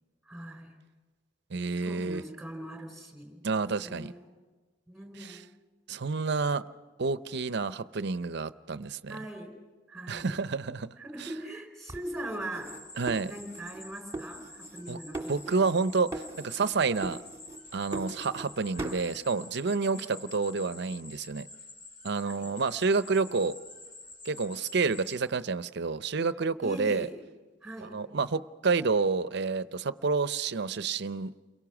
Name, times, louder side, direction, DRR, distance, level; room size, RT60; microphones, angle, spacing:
voice 1, 0.3-0.8 1.8-3.4 3.8-4.4 4.9-5.5 9.1-9.6 9.9-10.4 11.0-12.7 13.3-15.7 19.9-20.2 22.2-22.5 26.6-27.2 27.6-28.0, right 1 dB, ahead, 5 dB, 4.5 m, -41 dB
voice 2, 1.5-2.2 3.4-4.1 5.3-5.4 5.9-6.6 7.0-9.2 10.1-10.9 13.0-13.3 14.9-15.0 15.3-17.2 17.7-21.5 22.0-23.6 24.2-27.1 27.8-31.3, right 4 dB, 65° right, 14 dB, 0.7 m, -29 dB
sound 1, 11.9-13.8 14.1-14.9 15.1-15.8 16.1-16.7 17.0-18.5 18.8-19.1, right 2 dB, 15° right, 1.8 m, -40 dB
sound 2, 12.6-25.2, left 2 dB, 45° left, 3.4 m, -48 dB
29.5 x 23.0 x 6.0 m, 1.3 s
head